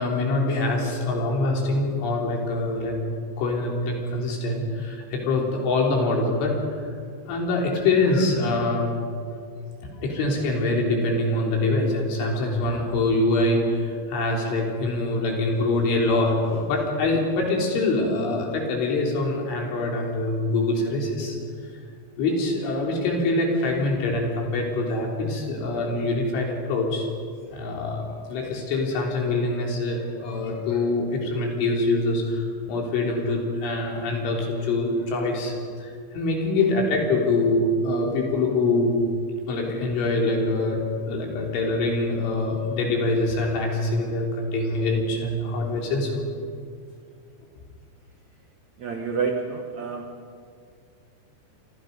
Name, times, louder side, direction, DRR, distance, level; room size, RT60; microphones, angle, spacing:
voice 1, 0.0-3.0 3.4-6.5 7.3-9.0 9.9-21.4 22.2-27.1 27.5-35.5 35.8-38.9 39.5-40.8 41.1-46.2, left 2 dB, 75° left, -1 dB, 6.2 m, -24 dB
voice 2, 16.2-16.6 48.8-50.2, right 5 dB, 90° right, 3 dB, 1.6 m, -30 dB
28.0 x 24.5 x 5.5 m, 2.2 s
omnidirectional pair, 5.7 m